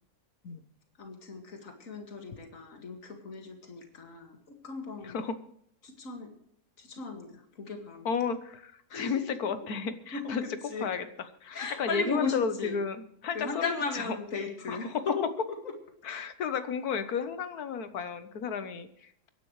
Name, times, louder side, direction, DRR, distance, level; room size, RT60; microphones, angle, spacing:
voice 1, 1.0-5.2 5.8-6.3 6.8-8.1 8.9-9.5 10.1-10.9 11.5-12.8 13.3-15.2 15.6-15.7, left 4 dB, 60° left, 4 dB, 2.5 m, -36 dB
voice 2, 5.0-5.3 8.0-10.4 10.8-11.1 11.4-14.0 14.7-15.0 16.0-19.3, left 6 dB, 85° left, 11 dB, 1.6 m, -33 dB
23.5 x 11.0 x 3.2 m, 0.67 s
omnidirectional pair, 1.6 m